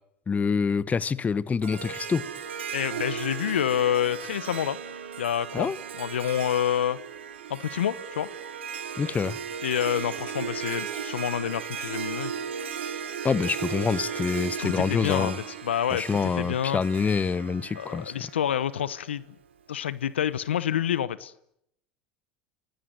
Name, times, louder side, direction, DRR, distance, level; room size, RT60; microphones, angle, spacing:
voice 1, 0.3-2.3 5.5-5.8 9.0-9.4 13.2-15.4 15.9-18.1, left 5 dB, 25° left, 1.1 m, -26 dB
Harp, 1.6-18.9, right 7 dB, 90° right, 3.2 m, -36 dB
voice 2, 2.7-4.8 5.2-5.7 6.0-7.0 7.5-8.3 9.6-12.3 14.6-16.8 17.7-19.2 19.7-21.3, left 10 dB, 85° left, 1.0 m, -28 dB
29.5 x 17.5 x 9.3 m
hypercardioid pair, 85°, 6 cm